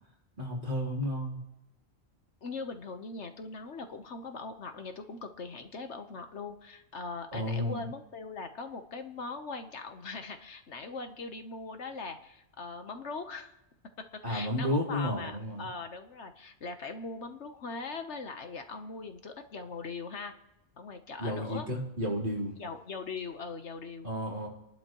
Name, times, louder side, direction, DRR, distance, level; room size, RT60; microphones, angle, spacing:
voice 1, 0.4-1.4 7.3-7.9 14.2-15.7 21.2-22.6 24.0-24.5, left 1 dB, 40° right, -3 dB, 3.7 m, -32 dB
voice 2, 2.4-13.5 14.0-20.3 20.8-21.7 22.6-24.1, left 4 dB, 65° left, 7 dB, 1.3 m, -41 dB
29.5 x 11.5 x 3.0 m, 0.88 s
omnidirectional pair, 1.3 m